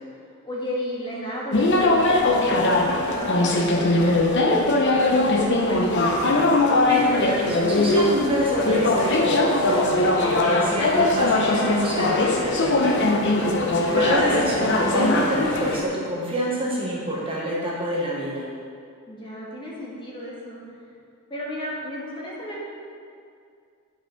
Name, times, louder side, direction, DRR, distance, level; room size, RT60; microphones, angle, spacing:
voice 1, 0.4-5.9 13.4-13.8 19.1-20.6 21.3-22.6, equal, 25° left, -5 dB, 1.7 m, -34 dB
sound 1, 1.5-15.8, left 2 dB, 55° left, 0.8 m, -21 dB
voice 2, 6.8-13.0 13.9-18.4, equal, 25° right, -5 dB, 1.2 m, -27 dB
8.4 x 5.1 x 5.1 m, 2.3 s
head